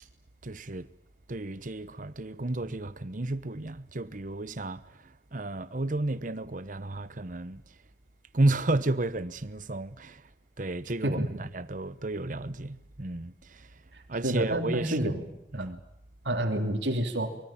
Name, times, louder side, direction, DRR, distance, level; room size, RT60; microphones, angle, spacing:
voice 1, 0.4-0.9 1.3-7.6 8.3-10.3 10.6-13.8 14.1-15.1 15.5-15.8, right 2 dB, 45° right, 1.0 m, -32 dB
voice 2, 11.0-11.4 14.2-15.2 15.5-15.7 16.2-17.4, right 1 dB, 80° right, 3.0 m, -29 dB
24.5 x 22.5 x 8.8 m
head